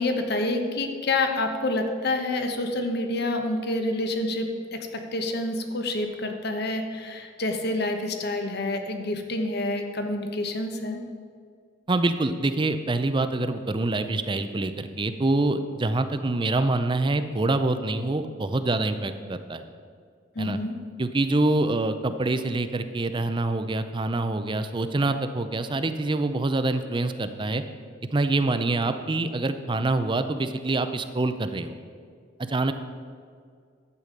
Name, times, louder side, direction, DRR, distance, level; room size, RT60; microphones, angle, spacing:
voice 1, 0.0-11.0 20.3-20.7, left 2 dB, 55° left, 5 dB, 1.1 m, -28 dB
voice 2, 11.9-19.6 20.4-20.6 21.0-27.6 28.1-31.8 32.4-32.7, right 2 dB, 25° right, 10 dB, 0.5 m, -25 dB
11.0 x 8.3 x 5.2 m, 2.1 s
head